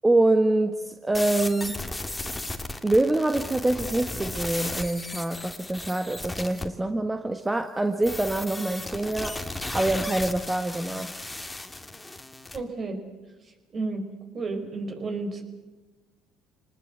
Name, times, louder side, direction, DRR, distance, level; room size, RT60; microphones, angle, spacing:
voice 1, 0.0-1.8 2.8-9.4 9.7-11.1, right 2 dB, 15° right, 7 dB, 1.5 m, -25 dB
sound 1, 1.1-6.7 8.0-12.6, left 2 dB, 10° left, 2.4 m, -35 dB
voice 2, 12.5-13.0 13.7-14.1 14.3-15.4, right 3 dB, 40° right, 5 dB, 5.1 m, -31 dB
26.5 x 19.5 x 8.2 m, 1.1 s
supercardioid pair, 75°, 0 cm